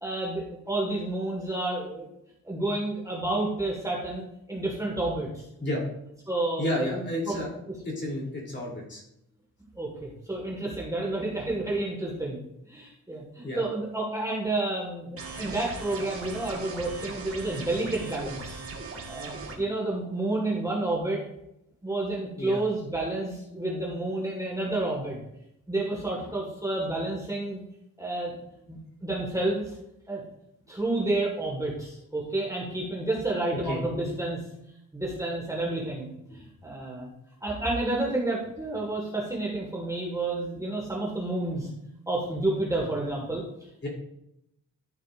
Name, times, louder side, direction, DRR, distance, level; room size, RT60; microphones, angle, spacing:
voice 1, 0.0-2.1 2.5-5.4 6.3-7.4 9.8-12.4 12.7-18.6 19.1-21.2 21.8-25.2 25.7-27.6 28.0-28.3 28.7-29.7 30.1-30.2 30.7-34.4 34.9-37.1 37.4-41.7 42.1-43.4, right 2 dB, 10° right, -3 dB, 1.8 m, -30 dB
voice 2, 6.6-7.5 7.8-9.0 13.4-13.6 22.4-22.6 33.5-33.8 36.3-36.4 43.8-43.9, left 1 dB, 35° left, -3 dB, 3.3 m, -31 dB
sound 1, 15.2-19.6, right 4 dB, 40° right, 1.8 m, -39 dB
13.0 x 6.6 x 2.6 m, 0.78 s
wide cardioid pair, 140°, 33 cm